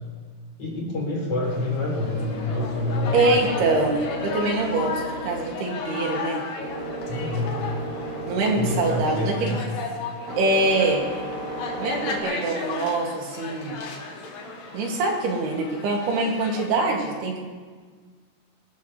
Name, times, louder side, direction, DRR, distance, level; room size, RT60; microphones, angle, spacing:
voice 1, 0.6-3.7 7.0-7.6 8.5-9.6, left 2 dB, 40° left, -2 dB, 3.8 m, -27 dB
sound 1, 1.4-16.7, left 4 dB, 80° left, 3.9 m, -35 dB
sound 2, 1.5-12.2, right 1 dB, 40° right, 3.6 m, -35 dB
voice 2, 3.1-6.4 8.3-9.6 10.4-11.0 11.8-13.7 14.7-17.4, right 2 dB, 75° right, -1 dB, 4.2 m, -24 dB
23.5 x 13.0 x 3.2 m, 1.5 s
omnidirectional pair, 4.7 m